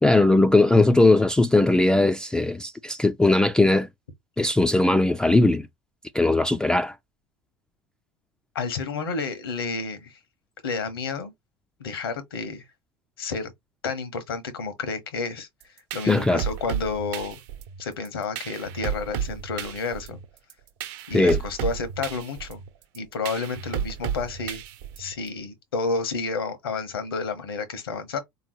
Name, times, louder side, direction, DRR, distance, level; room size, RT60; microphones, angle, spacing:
voice 1, 0.0-3.9 4.4-5.7 6.1-6.9 16.1-16.4 21.1-21.4, left 2 dB, 5° left, 0.3 m, -19 dB
voice 2, 8.5-10.2 10.6-11.3 11.8-12.6 13.2-13.5 13.8-15.5 15.9-17.4 17.8-20.2 21.1-22.6 22.9-24.6 25.0-28.2, left 4 dB, 85° left, 1.1 m, -30 dB
sound 1, 15.6-25.3, right 8 dB, 65° right, 0.9 m, -33 dB
3.6 x 3.0 x 3.1 m
hypercardioid pair, 85°, 12 cm